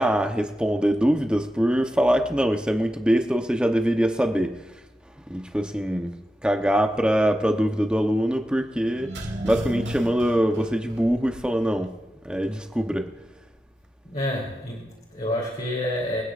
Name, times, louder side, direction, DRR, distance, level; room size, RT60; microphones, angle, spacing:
voice 1, 0.0-4.6 5.3-6.2 6.4-9.1 9.4-11.9 12.2-13.1, equal, 5° right, 4 dB, 0.8 m, -23 dB
sound 1, 8.8-11.7 12.0-12.1, right 1 dB, 90° right, 2.4 m, -34 dB
voice 2, 14.1-16.2, left 1 dB, 40° left, -4 dB, 3.1 m, -28 dB
25.0 x 9.9 x 2.5 m, 1.1 s
head